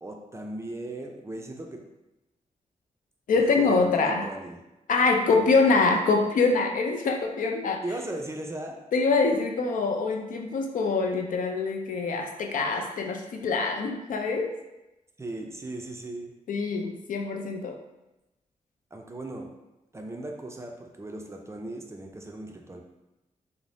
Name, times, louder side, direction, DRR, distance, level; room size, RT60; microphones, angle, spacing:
voice 1, 0.0-1.8 3.3-4.6 5.3-5.5 7.8-8.8 15.2-16.3 18.9-19.5 19.9-22.8, right 2 dB, 20° right, 2 dB, 0.4 m, -37 dB
voice 2, 3.3-4.3 4.9-7.8 8.9-14.5 16.5-17.8, left 4 dB, 70° left, 3 dB, 0.4 m, -24 dB
2.5 x 2.0 x 3.2 m, 0.97 s
cardioid pair, 85°, 14 cm